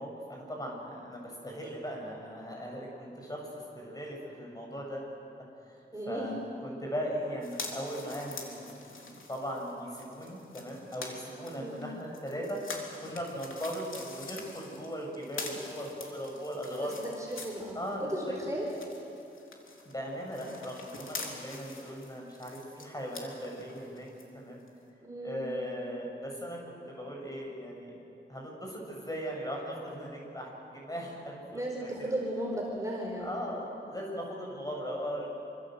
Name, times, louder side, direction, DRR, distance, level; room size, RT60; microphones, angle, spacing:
voice 1, 0.0-3.5 3.7-5.1 5.6-5.8 6.1-6.3 6.6-8.7 9.0-16.9 17.7-18.1 19.8-24.1 24.3-24.6 25.2-27.9 28.3-31.9 33.2-35.3, equal, 20° left, -1 dB, 7.8 m, -38 dB
voice 2, 5.9-6.3 11.5-11.8 16.8-18.9 25.0-25.5 31.5-33.4, right 1 dB, 15° right, -2 dB, 4.3 m, -35 dB
sound 1, 7.4-18.2 18.5-24.2 24.7-24.8, left 3 dB, 85° left, 3.6 m, -45 dB
27.5 x 26.0 x 8.0 m, 2.8 s
wide cardioid pair, 105°, 20 cm